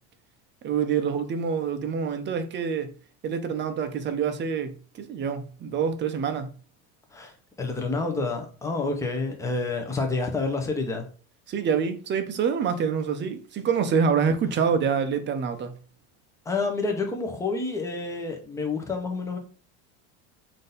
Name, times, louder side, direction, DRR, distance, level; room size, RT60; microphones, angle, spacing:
voice 1, 0.6-2.9 3.2-6.5 11.5-15.7, right 6 dB, 30° right, 0.6 m, -26 dB
voice 2, 7.1-11.1 16.4-19.4, left 3 dB, 10° left, 0.7 m, -29 dB
3.7 x 2.8 x 3.8 m
supercardioid pair, 120°, 35 cm